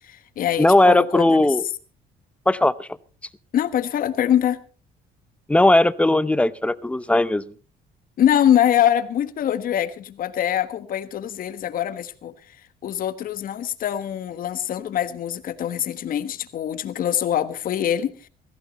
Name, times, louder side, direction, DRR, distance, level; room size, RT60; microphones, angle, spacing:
voice 1, 0.0-1.3 3.5-4.6 8.2-12.3 12.8-18.3, left 10 dB, 55° left, 1.4 m, -23 dB
voice 2, 0.6-1.7 2.5-2.9 5.5-7.4, left 1 dB, 5° left, 0.7 m, -18 dB
17.5 x 15.0 x 4.1 m
cardioid pair, 110°, 17 cm